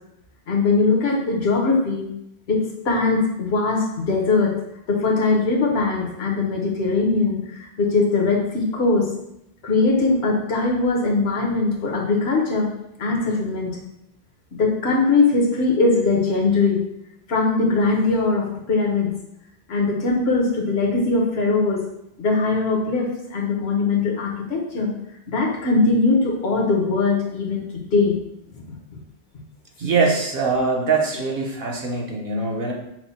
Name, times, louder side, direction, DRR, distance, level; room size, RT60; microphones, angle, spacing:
voice 1, 0.5-2.1 2.5-4.5 4.9-9.1 9.6-12.7 13.0-13.8 14.5-16.8 17.3-19.1 19.7-21.8 22.2-24.9 25.3-28.2 28.6-28.8, left 3 dB, 75° left, -1 dB, 1.2 m, -21 dB
voice 2, 29.8-32.7, right 4 dB, 60° right, 0 dB, 0.9 m, -22 dB
5.9 x 2.1 x 4.1 m, 0.82 s
omnidirectional pair, 1.1 m